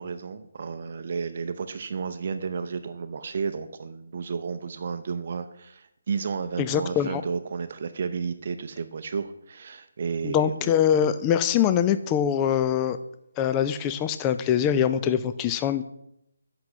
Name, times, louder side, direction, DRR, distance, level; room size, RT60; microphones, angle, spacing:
voice 1, 0.0-10.7, right 5 dB, 45° right, 9 dB, 0.6 m, -32 dB
voice 2, 6.6-7.2 10.2-13.0 13.4-15.8, left 9 dB, 15° left, 11 dB, 0.4 m, -23 dB
8.1 x 5.9 x 6.5 m, 0.78 s
hypercardioid pair, 165°, 0 cm